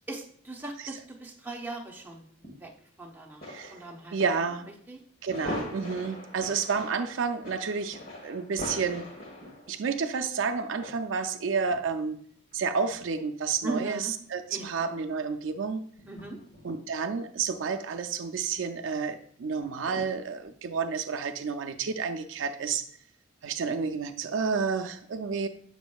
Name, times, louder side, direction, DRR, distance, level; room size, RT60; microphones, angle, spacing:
voice 1, 0.1-2.2 2.6-2.7 3.0-4.2 4.9-5.0 13.6-14.1 14.5-14.7 16.1-16.4, right 2 dB, 10° right, 0 dB, 0.8 m, -38 dB
sound 1, 2.4-2.5 3.4-4.3 4.6-4.7 5.3-10.0 10.4-10.5 10.8-11.1 11.7-11.8 12.5-13.2 15.1-15.2 16.0-16.8 18.4-18.5 19.6-20.1 20.4-20.5, left 1 dB, 45° left, 1.4 m, -41 dB
voice 2, 4.1-4.7 5.2-9.1 9.7-12.2 12.5-15.8 16.6-22.8 23.4-25.5, right 5 dB, 70° right, 6 dB, 0.4 m, -30 dB
6.9 x 6.2 x 2.3 m, 0.63 s
head